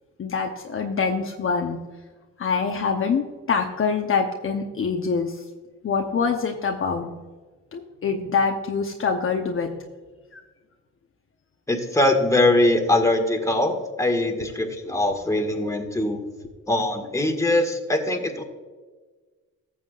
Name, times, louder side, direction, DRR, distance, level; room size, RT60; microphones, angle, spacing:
voice 1, 0.2-1.8 2.4-5.5 5.8-7.1 7.7-9.7 10.3-10.4, left 5 dB, 45° left, 3 dB, 0.9 m, -25 dB
voice 2, 11.7-16.2 16.7-18.4, left 1 dB, 10° left, 3 dB, 1.7 m, -22 dB
15.0 x 7.3 x 2.4 m, 1.3 s
cardioid pair, 90°, 30 cm